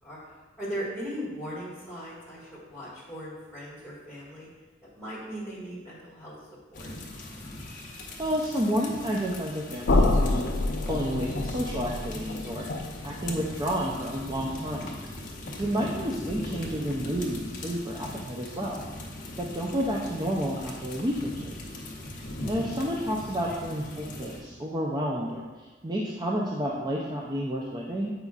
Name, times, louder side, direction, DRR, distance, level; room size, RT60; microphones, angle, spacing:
voice 1, 0.0-4.5 4.8-6.3 6.7-6.9 15.4-15.5 22.2-22.5, equal, 5° right, -9 dB, 1.6 m, -39 dB
sound 1, 6.7-24.4, left 1 dB, 45° left, 0.9 m, -40 dB
voice 2, 8.2-10.5 10.8-12.6 13.0-14.9 15.6-18.8 19.4-21.6 22.5-28.1, equal, 20° right, -4 dB, 0.5 m, -30 dB
sound 2, 9.9-15.8, left 2 dB, 60° left, 0.5 m, -29 dB
8.0 x 5.3 x 2.4 m, 1.3 s
head